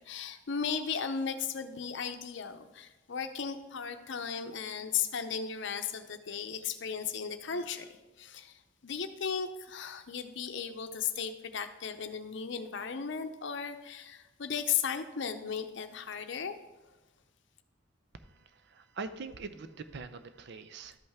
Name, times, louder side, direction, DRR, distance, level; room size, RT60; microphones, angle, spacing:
voice 1, 0.0-16.5, left 7 dB, 65° left, 8 dB, 0.6 m, -36 dB
voice 2, 18.1-21.0, right 4 dB, 60° right, 11 dB, 0.6 m, -43 dB
13.0 x 5.5 x 3.5 m, 1.1 s
head